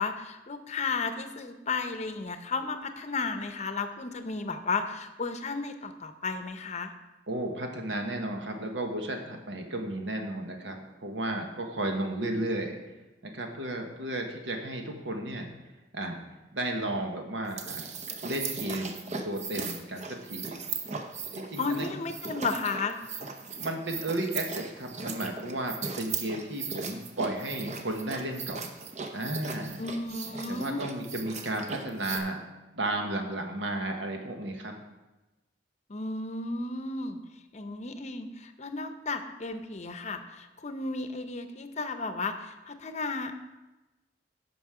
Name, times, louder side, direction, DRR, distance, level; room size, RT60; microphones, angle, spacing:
voice 1, 0.0-6.9 21.6-23.0 29.8-30.8 35.9-37.2 37.5-43.4, left 4 dB, 40° left, 8 dB, 0.7 m, -33 dB
voice 2, 7.3-12.8 13.2-15.5 15.9-16.2 16.5-17.9 18.2-20.6 21.4-21.9 23.6-28.7 29.1-29.8 30.5-32.4 32.7-34.7, right 1 dB, 85° right, 3 dB, 1.3 m, -33 dB
sound 1, 17.4-32.2, right 5 dB, 40° right, 0.8 m, -38 dB
9.3 x 6.1 x 4.9 m, 1.1 s
head